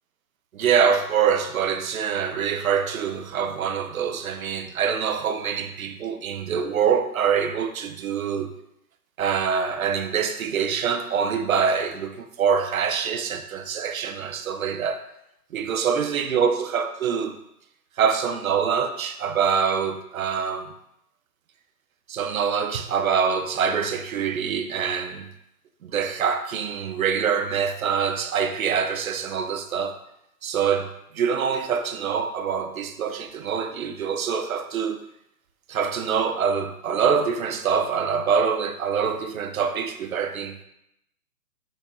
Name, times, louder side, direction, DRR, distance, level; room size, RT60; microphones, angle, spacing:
voice 1, 0.5-8.5 9.2-15.0 15.5-17.4 18.0-20.7 22.1-25.3 25.8-30.0 30.4-35.0 35.7-40.6, right 7 dB, 60° right, 0.8 m, -25 dB
8.0 x 6.5 x 2.5 m
hypercardioid pair, 165°, 47 cm